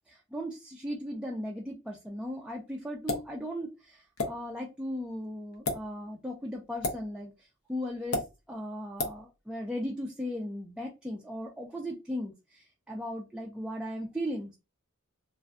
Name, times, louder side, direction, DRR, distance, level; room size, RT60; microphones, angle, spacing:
voice 1, 0.1-14.6, equal, 5° right, 0.3 m, -37 dB
sound 1, 3.1-3.3 4.2-4.3 5.5-5.8 6.8-7.0 8.1-8.3 9.0-9.2, left 2 dB, 85° left, 0.6 m, -30 dB
2.5 x 2.1 x 2.4 m
head